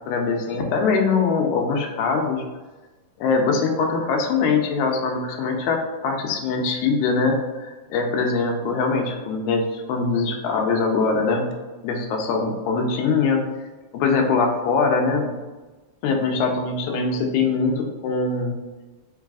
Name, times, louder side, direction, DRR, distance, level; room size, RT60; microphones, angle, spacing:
voice 1, 0.1-2.5 3.2-11.5 11.8-13.4 13.9-15.3 16.0-18.6, left 4 dB, 80° left, 3 dB, 1.9 m, -22 dB
4.7 x 3.3 x 2.3 m, 1.2 s
omnidirectional pair, 3.6 m